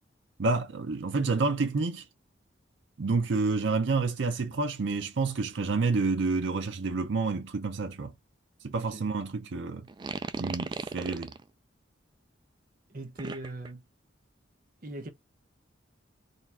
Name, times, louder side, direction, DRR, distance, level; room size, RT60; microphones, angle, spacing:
voice 1, 0.4-2.0 3.0-8.1 8.6-9.9 10.4-11.3, right 4 dB, 70° right, 0.6 m, -29 dB
voice 2, 8.8-9.1 12.9-13.8 14.8-15.1, right 2 dB, 50° right, 0.9 m, -40 dB
sound 1, 9.9-11.4 13.2-13.7, right 4 dB, 25° right, 0.3 m, -36 dB
3.9 x 2.4 x 4.2 m
head